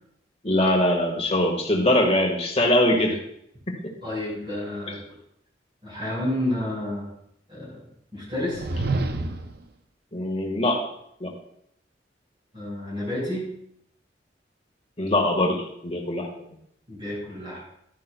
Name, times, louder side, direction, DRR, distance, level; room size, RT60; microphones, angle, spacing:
voice 1, 0.4-3.2 3.8-3.9 10.1-10.9 11.2-11.3 15.0-16.5, left 1 dB, 35° left, 1 dB, 1.7 m, -22 dB
voice 2, 4.0-5.0 5.8-7.1 7.5-7.8 8.1-8.7 12.5-13.5 16.9-17.6, left 1 dB, 30° right, -8 dB, 4.5 m, -30 dB
sound 1, 8.3-9.6, right 2 dB, 60° right, 0.7 m, -28 dB
12.5 x 10.5 x 2.3 m, 0.73 s
head